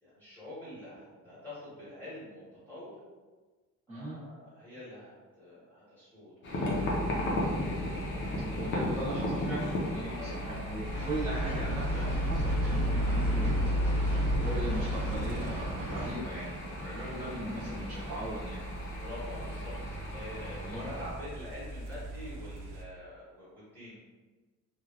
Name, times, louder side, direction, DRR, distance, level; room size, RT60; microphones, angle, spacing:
voice 1, 0.0-3.0 3.9-7.0 8.0-8.8 10.1-11.0 13.8-14.4 19.0-24.0, left 1 dB, 5° left, -12 dB, 1.1 m, -47 dB
voice 2, 3.9-4.2 8.4-13.7 14.4-16.5 16.8-18.6 20.6-20.8, right 1 dB, 25° right, -13 dB, 1.0 m, -38 dB
sound 1, 6.4-21.1, left 1 dB, 40° left, 0.5 m, -37 dB
sound 2, 6.7-22.8, equal, 85° right, 0.5 m, -35 dB
sound 3, 10.8-16.1, right 1 dB, 45° right, 0.8 m, -36 dB
3.1 x 2.3 x 2.3 m, 1.3 s
cardioid pair, 180°, 31 cm